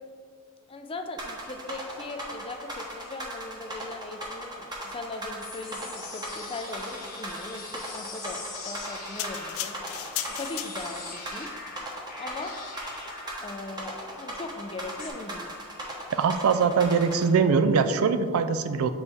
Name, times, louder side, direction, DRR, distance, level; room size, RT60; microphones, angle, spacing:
voice 1, 0.7-8.4 8.6-9.8 10.3-11.5 12.2-12.6 13.4-15.6, left 2 dB, 25° left, 5 dB, 0.4 m, -39 dB
sound 1, 1.2-17.2, right 1 dB, 20° right, 0.9 m, -37 dB
sound 2, 5.4-15.1, left 4 dB, 45° left, 1.2 m, -43 dB
sound 3, 9.2-11.2 11.8-12.0, left 11 dB, 80° left, 0.4 m, -35 dB
voice 2, 16.1-18.9, right 5 dB, 75° right, 10 dB, 0.4 m, -22 dB
6.9 x 4.1 x 3.5 m, 2.1 s
head